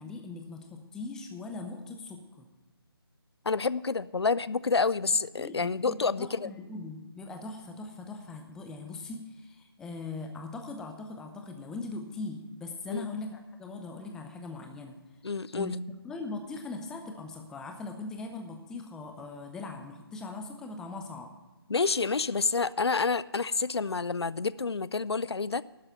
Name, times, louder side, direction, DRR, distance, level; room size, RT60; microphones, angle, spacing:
voice 1, 0.0-2.5 5.4-15.0 15.6-15.7 16.0-21.3, left 3 dB, 5° left, 4 dB, 0.7 m, -40 dB
voice 2, 3.5-6.5 12.9-13.0 15.2-15.7 21.7-25.6, left 4 dB, 85° left, 19 dB, 0.5 m, -28 dB
12.0 x 6.5 x 8.7 m, 1.2 s
figure-of-eight pair, 155°, 13 cm